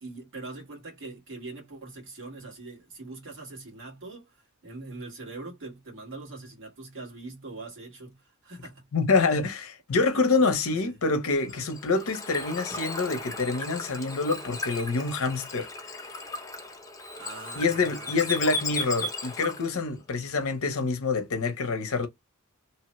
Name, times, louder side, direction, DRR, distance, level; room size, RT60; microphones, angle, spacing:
voice 1, 0.0-8.9 10.1-10.4 10.7-11.0 11.5-11.6 17.2-18.4, right 3 dB, 60° right, 1.5 m, -42 dB
voice 2, 8.9-15.7 17.6-22.1, left 4 dB, 65° left, 0.7 m, -26 dB
Bird / Water, 11.4-19.8, left 3 dB, 15° left, 0.8 m, -36 dB
3.0 x 2.1 x 3.0 m
head